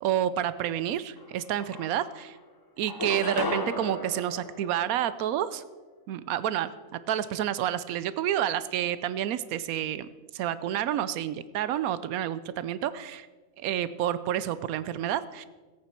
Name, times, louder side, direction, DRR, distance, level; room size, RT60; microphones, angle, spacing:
voice 1, 0.0-2.3 2.8-5.6 6.1-6.7 7.1-13.3 13.6-15.5, right 11 dB, 90° right, 15 dB, 1.1 m, -29 dB
sound 1, 1.2-1.3 1.6-2.4 2.8-5.4, left 1 dB, 25° left, 0.6 m, -35 dB
17.5 x 8.7 x 4.4 m, 1.3 s
omnidirectional pair, 1.5 m